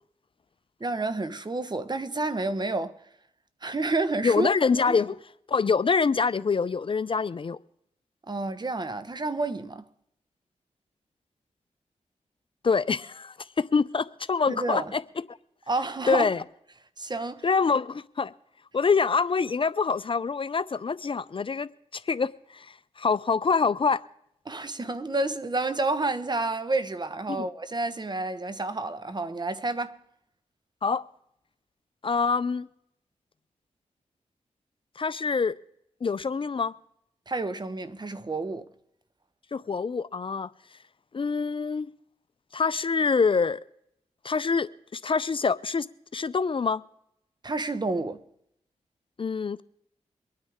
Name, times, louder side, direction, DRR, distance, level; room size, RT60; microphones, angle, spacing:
voice 1, 0.8-3.0 3.6-4.5 4.9-5.0 8.3-9.8 14.5-14.9 15.7-16.3 17.0-17.5 24.5-30.0 37.3-38.7 47.4-48.2, right 2 dB, 35° right, 1.2 m, -29 dB
voice 2, 4.2-5.2 5.5-7.6 12.6-15.0 16.1-16.4 17.4-18.3 18.7-24.0 27.3-27.5 30.8-31.0 32.0-32.7 35.0-35.5 36.0-36.7 39.5-40.5 41.1-41.9 42.5-43.6 44.2-45.9 46.1-46.8 49.2-49.6, left 5 dB, 45° left, 0.5 m, -25 dB
24.0 x 9.6 x 3.6 m
cardioid pair, 50°, 13 cm